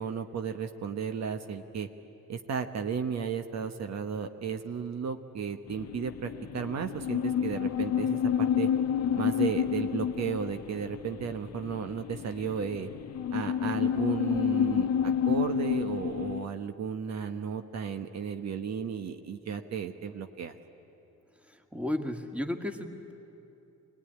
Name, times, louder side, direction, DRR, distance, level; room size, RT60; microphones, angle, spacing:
voice 1, 0.0-1.9 2.3-8.7 9.2-12.9 13.3-20.5, right 6 dB, 60° right, 7 dB, 1.1 m, -34 dB
sound 1, 5.7-16.5, left 8 dB, 60° left, 0.7 m, -29 dB
voice 2, 21.5-23.1, left 1 dB, 5° right, 5 dB, 1.8 m, -34 dB
23.0 x 18.5 x 10.0 m, 2.9 s
cardioid pair, 90°, 30 cm